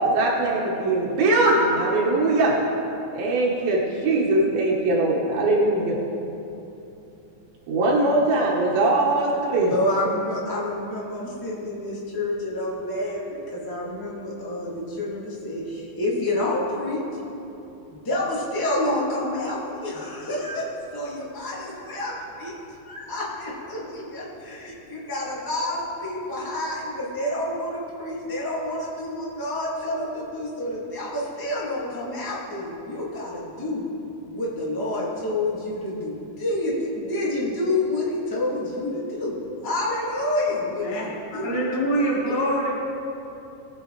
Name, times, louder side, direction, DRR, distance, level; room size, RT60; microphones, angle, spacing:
voice 1, 0.0-2.5 3.1-6.0 7.7-9.7, right 2 dB, 90° right, -4 dB, 3.1 m, -21 dB
voice 2, 9.7-17.0 17.9-22.5 22.8-33.8 34.3-39.3 39.6-41.5 42.2-42.3, left 1 dB, 10° left, -7 dB, 1.3 m, -28 dB
voice 3, 41.3-42.8, right 1 dB, 45° left, -6 dB, 1.3 m, -24 dB
19.5 x 7.0 x 3.2 m, 3.0 s
omnidirectional pair, 4.0 m